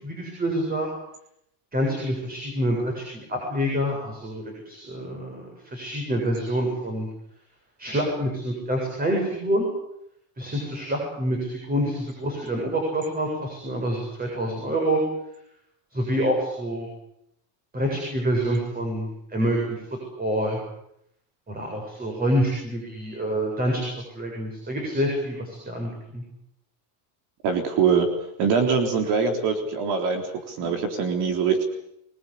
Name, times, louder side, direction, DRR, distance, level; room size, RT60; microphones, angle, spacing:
voice 1, 0.0-0.9 1.7-7.1 7.8-9.7 10.4-15.0 15.9-16.9 17.7-19.8 20.2-20.6 21.5-26.2, equal, 20° right, 0 dB, 7.9 m, -27 dB
voice 2, 27.4-28.1 28.4-31.6, right 6 dB, 50° right, 5 dB, 3.9 m, -23 dB
25.0 x 20.5 x 8.5 m, 0.78 s
supercardioid pair, 140°, 49 cm